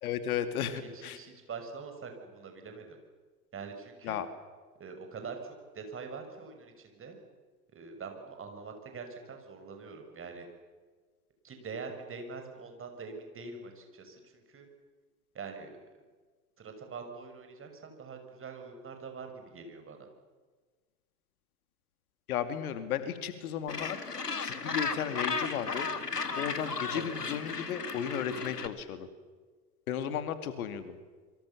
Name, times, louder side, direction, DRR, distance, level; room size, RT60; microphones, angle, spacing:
voice 1, 0.0-1.2 4.0-4.3 22.3-24.0 24.3-25.9 26.4-29.1 29.9-31.0, left 9 dB, 65° left, 10 dB, 2.5 m, -34 dB
voice 2, 0.8-3.0 3.5-4.2 4.7-7.2 7.7-10.5 11.4-14.7 15.3-15.8 16.6-20.1 26.9-27.1, right 4 dB, 25° right, 5 dB, 6.4 m, -44 dB
Gull seagull, 23.7-28.7, left 4 dB, 90° left, 1.7 m, -35 dB
27.5 x 24.0 x 7.1 m, 1.4 s
figure-of-eight pair, 80°, 46 cm